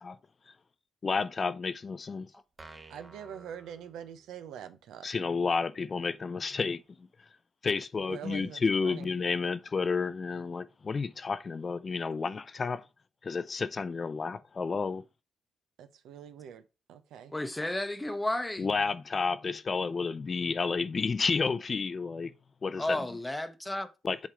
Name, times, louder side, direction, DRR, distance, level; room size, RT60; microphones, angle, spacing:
voice 1, 1.0-2.3 5.0-6.8 7.6-12.8 13.2-15.0 18.6-22.3 22.6-23.0 24.0-24.3, left 4 dB, 35° left, 0.5 m, -31 dB
sound 1, 2.6-4.5, right 3 dB, 25° right, 1.0 m, -52 dB
voice 2, 2.9-5.1 8.0-9.1 15.8-16.6 16.9-17.3, right 9 dB, 85° right, 0.7 m, -44 dB
voice 3, 17.3-18.7 22.8-23.9, left 1 dB, 10° left, 0.8 m, -32 dB
7.4 x 3.7 x 4.9 m
cardioid pair, 90°, 0 cm